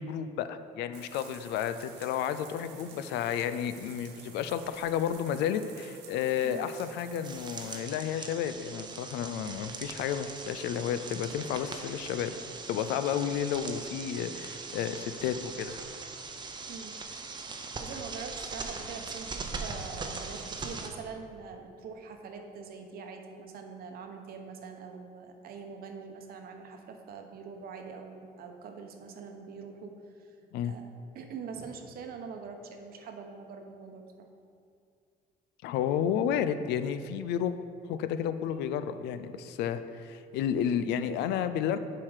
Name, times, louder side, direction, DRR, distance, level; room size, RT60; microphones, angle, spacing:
voice 1, 0.0-12.3 12.7-15.8 30.5-30.7 35.6-37.5 37.8-41.8, left 9 dB, 85° left, 11 dB, 0.4 m, -31 dB
sound 1, 0.9-7.8, right 7 dB, 90° right, 0.8 m, -51 dB
sound 2, 7.2-20.9, right 4 dB, 25° right, 0.7 m, -41 dB
voice 2, 17.6-29.9 30.2-30.3 30.6-30.8 31.1-34.3, right 5 dB, 65° right, 4 dB, 0.9 m, -44 dB
7.2 x 4.8 x 4.8 m, 2.3 s
cardioid pair, 110°, 17 cm